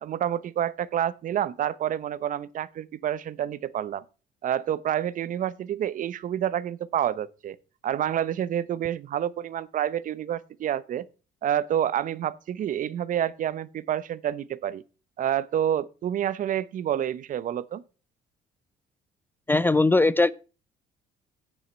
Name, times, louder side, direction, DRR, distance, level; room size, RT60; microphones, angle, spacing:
voice 1, 0.0-4.0 4.4-7.6 7.8-11.0 11.4-14.8 15.2-17.8, right 10 dB, 50° right, 0.7 m, -28 dB
voice 2, 19.5-20.3, left 2 dB, 10° left, 0.3 m, -20 dB
8.6 x 8.2 x 4.3 m
cardioid pair, 110°, 17 cm